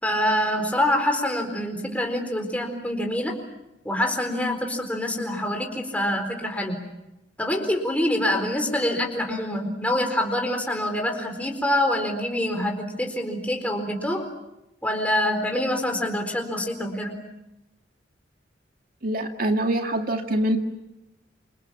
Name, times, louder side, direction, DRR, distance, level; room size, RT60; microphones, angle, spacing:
voice 1, 0.0-3.4 3.8-6.8 7.4-14.3 14.8-17.2, left 1 dB, 10° left, 3 dB, 4.2 m, -25 dB
voice 2, 19.0-20.6, right 1 dB, 50° right, 4 dB, 2.2 m, -24 dB
28.0 x 27.5 x 7.3 m, 0.91 s
head